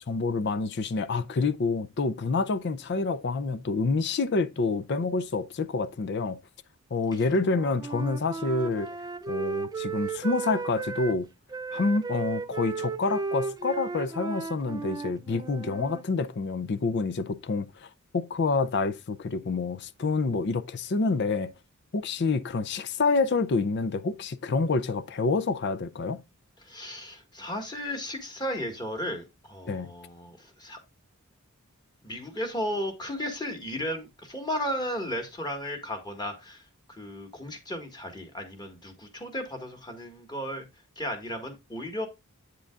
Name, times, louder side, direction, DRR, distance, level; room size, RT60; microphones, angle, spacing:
voice 1, 0.1-6.4 6.9-8.9 9.3-11.3 11.7-21.5 21.9-26.2 29.7-29.9, left 3 dB, 50° left, 0.5 m, -28 dB
Wind instrument woodwind instrument, 7.4-11.2 11.5-16.0, right 4 dB, 15° right, 0.3 m, -35 dB
voice 2, 26.6-30.8 32.0-40.7 41.0-42.1, equal, 20° left, 1.7 m, -35 dB
8.4 x 7.7 x 2.4 m
head